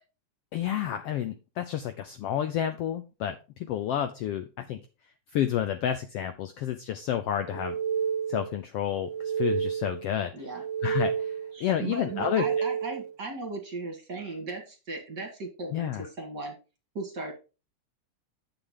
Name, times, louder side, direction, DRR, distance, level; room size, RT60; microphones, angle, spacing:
voice 1, 0.5-4.8 5.3-7.7 8.3-10.3 10.8-12.7 15.7-16.1, left 10 dB, 85° left, 9 dB, 1.3 m, -30 dB
sound 1, 7.4-8.6 8.9-10.1 10.4-11.6 12.0-13.1, right 7 dB, 85° right, 1.1 m, -30 dB
voice 2, 11.5-15.9 16.2-16.5 17.0-17.3, right 3 dB, 40° right, 3 dB, 1.8 m, -36 dB
9.3 x 7.1 x 3.7 m, 0.31 s
omnidirectional pair, 3.5 m